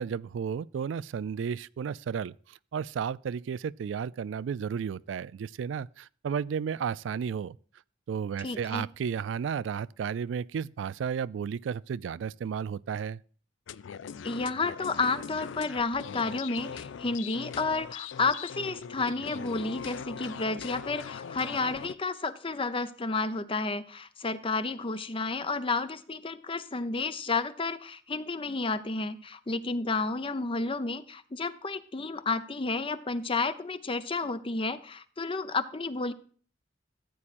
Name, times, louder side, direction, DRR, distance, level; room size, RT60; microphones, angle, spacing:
voice 1, 0.0-7.6 8.1-13.2, right 7 dB, 80° right, 0.3 m, -33 dB
voice 2, 8.4-8.8 14.2-36.1, left 3 dB, 30° left, 0.7 m, -31 dB
sound 1, 13.7-22.0, left 7 dB, 75° left, 0.4 m, -41 dB
14.0 x 8.5 x 2.5 m
head